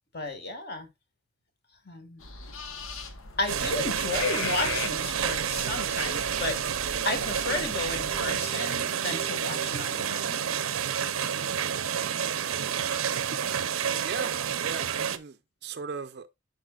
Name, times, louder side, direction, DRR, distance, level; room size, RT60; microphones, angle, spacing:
voice 1, 0.1-0.9 1.8-2.3 3.4-10.4, left 3 dB, 50° left, 1.5 m, -33 dB
sound 1, 2.2-8.4, left 4 dB, 85° left, 1.0 m, -39 dB
sound 2, 3.5-15.2, right 8 dB, 90° right, 0.6 m, -29 dB
voice 2, 14.0-16.3, right 5 dB, 50° right, 0.4 m, -38 dB
10.5 x 4.8 x 2.3 m
head